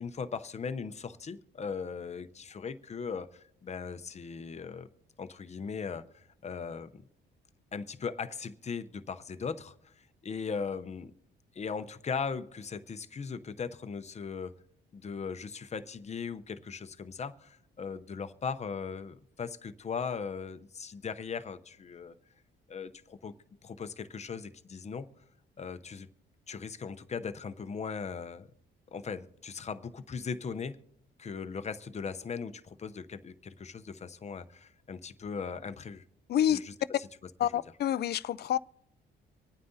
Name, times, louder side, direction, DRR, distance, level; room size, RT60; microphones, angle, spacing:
voice 1, 0.0-4.9 5.2-7.0 7.7-11.1 11.5-14.5 14.9-22.1 22.7-23.4 23.6-25.1 25.6-26.1 26.5-28.5 28.9-30.8 31.2-36.0 36.5-36.7 37.0-37.1, left 5 dB, 35° left, 0.7 m, -38 dB
voice 2, 36.3-36.6 37.4-38.6, left 10 dB, 55° left, 0.4 m, -28 dB
25.5 x 9.3 x 2.7 m
cardioid pair, 90°, 20 cm